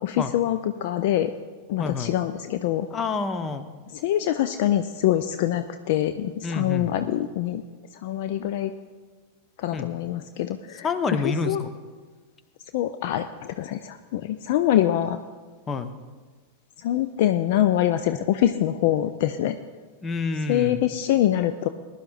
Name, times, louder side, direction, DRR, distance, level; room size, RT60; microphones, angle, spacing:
voice 1, 0.0-1.3 1.7-2.9 3.9-7.6 8.0-8.7 9.6-11.6 12.7-15.2 16.8-19.6 20.5-21.7, left 12 dB, 50° left, 10 dB, 0.4 m, -24 dB
voice 2, 1.8-2.1 2.9-3.7 6.4-6.9 9.7-9.9 10.8-11.7 15.7-15.9 20.0-20.8, left 4 dB, 20° left, 11 dB, 0.8 m, -28 dB
20.0 x 11.0 x 2.6 m, 1.4 s
figure-of-eight pair, 90°, 0 cm